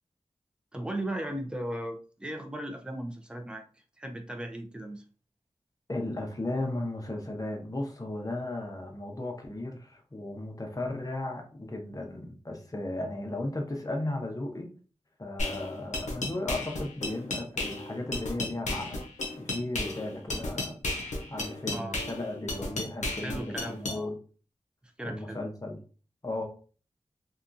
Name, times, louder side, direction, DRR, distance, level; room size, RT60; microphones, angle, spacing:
voice 1, 0.7-3.6 4.0-5.0 21.7-22.0 23.2-24.1 25.0-25.4, right 1 dB, 10° right, 5 dB, 0.5 m, -37 dB
voice 2, 5.9-14.7 15.2-19.0 19.4-20.8 21.3-24.2 25.0-25.8 26.2-26.4, left 2 dB, 30° left, 2 dB, 0.7 m, -35 dB
sound 1, 15.4-24.0, left 2 dB, 85° left, 0.6 m, -34 dB
2.8 x 2.3 x 2.5 m, 0.39 s
wide cardioid pair, 60°, 12 cm